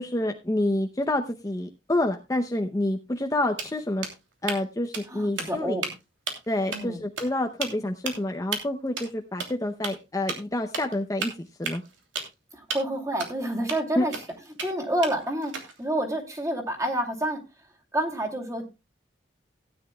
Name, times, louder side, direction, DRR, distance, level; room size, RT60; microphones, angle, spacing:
voice 1, 0.0-4.1 4.4-5.8 6.5-11.8 14.0-14.1, left 1 dB, 20° left, 4 dB, 0.7 m, -28 dB
sound 1, 3.2-3.3 3.6-4.6 4.9-5.1 5.4-5.9 6.3-6.5 6.7-6.8 7.2-7.3 7.6-7.7 8.1-8.2 8.5-8.6 9.0-9.1 9.4-9.5 9.8-9.9 10.3-10.4 10.7-10.9 11.2-12.3 12.7-12.8 13.2-13.3 13.7-13.8 14.1-14.7 15.0-15.8, right 5 dB, 90° right, 2.9 m, -32 dB
voice 2, 5.1-5.9 6.7-7.0 12.5-14.2 14.6-15.5 15.8-17.4 17.9-18.7, right 1 dB, 15° right, 1 dB, 2.5 m, -28 dB
17.5 x 9.9 x 2.3 m, 0.25 s
head